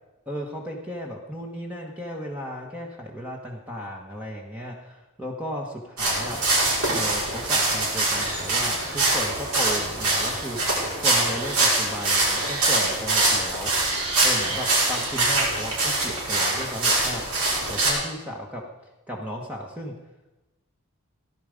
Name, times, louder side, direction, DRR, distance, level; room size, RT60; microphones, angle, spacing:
voice 1, 0.3-6.4 6.9-10.6 11.0-13.7 14.2-17.2 17.7-18.6 19.1-19.9, equal, 5° right, -1 dB, 1.3 m, -34 dB
sound 1, 6.0-17.9, right 2 dB, 90° right, 5.8 m, -24 dB
17.5 x 11.5 x 5.2 m, 1.0 s
head